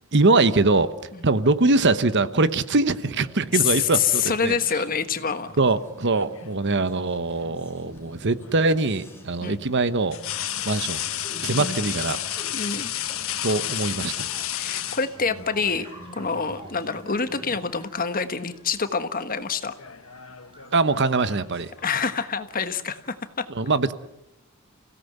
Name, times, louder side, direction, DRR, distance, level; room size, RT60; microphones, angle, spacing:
voice 1, 0.1-0.9 1.2-4.6 5.6-10.2 10.6-11.0 11.4-12.2 13.4-14.3 20.7-21.7 23.5-23.9, right 3 dB, 55° right, 13 dB, 1.0 m, -22 dB
sound 1, 3.0-17.6, equal, 10° left, 4.5 m, -46 dB
voice 2, 3.5-5.5 9.4-9.5 11.6-11.8 12.5-12.9 14.6-15.9 16.1-19.7 21.8-23.5, left 6 dB, 40° left, 10 dB, 1.4 m, -26 dB
sound 2, 5.8-6.7 8.4-8.6 10.1-15.6 16.8-17.0 17.4-18.1 18.4-18.8 19.6-22.2, left 12 dB, 65° left, 1.3 m, -32 dB
sound 3, 13.3-21.0, right 1 dB, 25° right, 5.0 m, -51 dB
29.0 x 17.0 x 8.1 m, 0.90 s
head